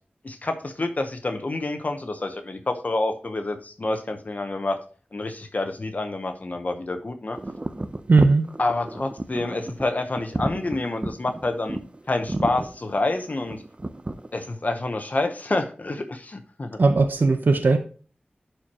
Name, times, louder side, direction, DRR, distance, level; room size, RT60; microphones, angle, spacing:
voice 1, 0.2-4.8 5.1-7.4 8.6-11.8 12.1-13.6 14.3-16.8, left 2 dB, 55° left, 7 dB, 0.8 m, -28 dB
sound 1, 7.3-14.4, right 2 dB, 35° right, 0.6 m, -32 dB
voice 2, 8.1-8.4 16.8-17.8, right 3 dB, 75° right, 7 dB, 0.6 m, -18 dB
11.0 x 4.5 x 2.9 m, 0.39 s
wide cardioid pair, 55°, 3 cm